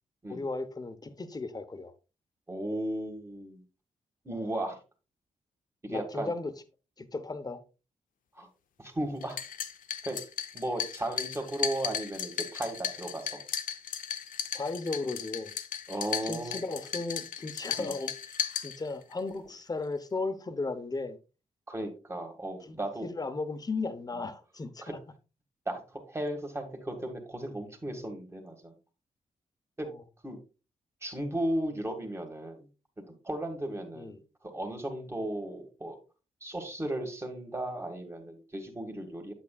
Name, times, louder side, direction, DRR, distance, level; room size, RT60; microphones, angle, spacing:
voice 1, 0.3-1.9 5.9-6.5 7.0-7.6 14.5-15.5 16.2-21.2 22.6-25.0 29.8-30.0 33.9-34.2, left 3 dB, 30° left, 0.9 m, -36 dB
voice 2, 2.5-3.6 4.2-4.8 5.8-6.3 8.3-8.5 8.8-9.4 10.0-10.2 10.5-13.4 15.9-16.6 17.8-17.9 21.7-23.1 24.8-24.9 25.7-28.7 29.8-29.9 30.2-30.4 31.0-32.7 33.2-36.0 36.4-39.3, right 1 dB, 20° right, 1.9 m, -35 dB
sound 1, 9.2-19.2, left 8 dB, 90° left, 0.7 m, -36 dB
8.4 x 8.0 x 2.4 m
cardioid pair, 90°, 14 cm